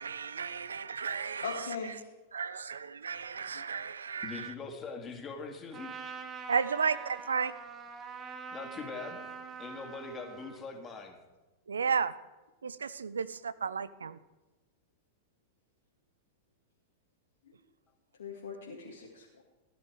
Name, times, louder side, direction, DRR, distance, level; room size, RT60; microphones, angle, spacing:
voice 1, 0.0-2.0 2.3-4.5 6.5-7.5 11.7-12.1 12.6-14.2, right 6 dB, 80° right, 0.6 m, -33 dB
voice 2, 1.4-2.0 17.5-17.6 18.2-19.4, left 5 dB, 75° left, 2.0 m, -40 dB
voice 3, 4.2-5.9 8.5-9.3 9.6-11.2, left 4 dB, 25° left, 2.4 m, -42 dB
Trumpet, 5.7-10.6, right 5 dB, 30° right, 1.6 m, -44 dB
15.5 x 11.0 x 4.8 m
figure-of-eight pair, 95°, 0 cm